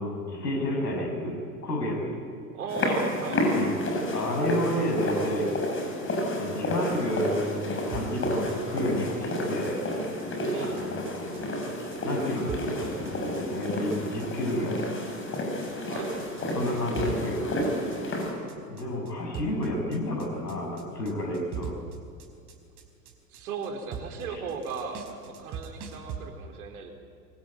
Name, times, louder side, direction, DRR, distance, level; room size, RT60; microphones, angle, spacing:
voice 1, 0.0-2.2 3.5-3.8 4.1-5.6 6.3-9.8 10.5-14.9 16.5-17.6 18.1-18.2 18.5-21.8 24.3-24.4, left 1 dB, 75° left, 2 dB, 7.5 m, -31 dB
voice 2, 2.5-3.4 10.5-10.9 15.8-16.1 23.3-26.9, right 5 dB, 60° right, 3 dB, 4.6 m, -36 dB
sound 1, 2.7-18.3, left 1 dB, 25° left, 7.6 m, -30 dB
sound 2, 7.9-26.2, right 6 dB, 40° right, 4.8 m, -42 dB
24.5 x 24.5 x 9.2 m, 2.4 s
figure-of-eight pair, 85°, 49 cm